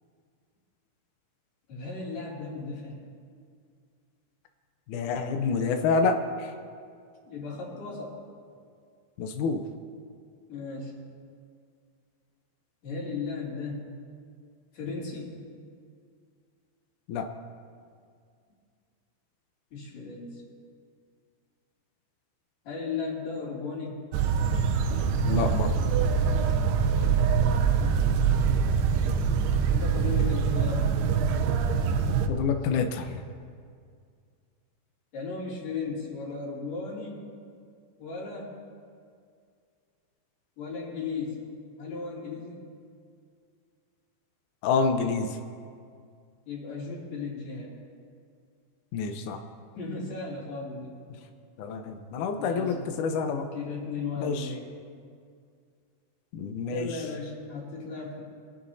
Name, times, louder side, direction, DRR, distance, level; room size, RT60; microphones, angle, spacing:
voice 1, 1.7-3.0 7.3-8.1 10.5-10.9 12.8-13.9 14.7-15.4 19.7-20.4 22.7-24.1 29.7-30.9 35.1-37.2 38.0-38.5 40.6-41.4 41.8-42.6 46.5-47.7 49.8-50.9 52.4-52.7 53.5-54.6 56.7-58.2, left 4 dB, 45° left, -4 dB, 3.6 m, -35 dB
voice 2, 4.9-6.5 9.2-9.6 17.1-17.3 25.3-25.7 32.3-33.2 44.6-45.4 48.9-49.4 51.6-53.5 54.2-54.5 56.3-57.0, left 5 dB, 90° left, 6 dB, 1.7 m, -28 dB
sound 1, 24.1-32.3, right 6 dB, 80° right, 2.8 m, -24 dB
24.5 x 12.0 x 2.7 m, 2.2 s
omnidirectional pair, 4.7 m